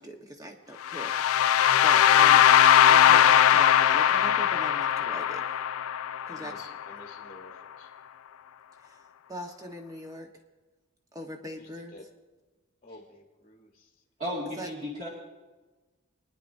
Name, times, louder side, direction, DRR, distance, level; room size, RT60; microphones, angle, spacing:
voice 1, 0.0-2.4 2.9-5.4 6.3-6.7 8.8-10.3 11.1-12.0 14.6-14.7, right 1 dB, 15° right, 2 dB, 1.1 m, -41 dB
sound 1, 0.9-6.8, left 10 dB, 75° left, 0.3 m, -20 dB
voice 2, 6.3-7.9 11.6-12.0 12.8-13.9, left 2 dB, 30° left, 0 dB, 1.2 m, -51 dB
voice 3, 14.2-15.1, left 1 dB, 35° right, -7 dB, 2.1 m, -34 dB
24.5 x 10.0 x 2.6 m, 1.2 s
head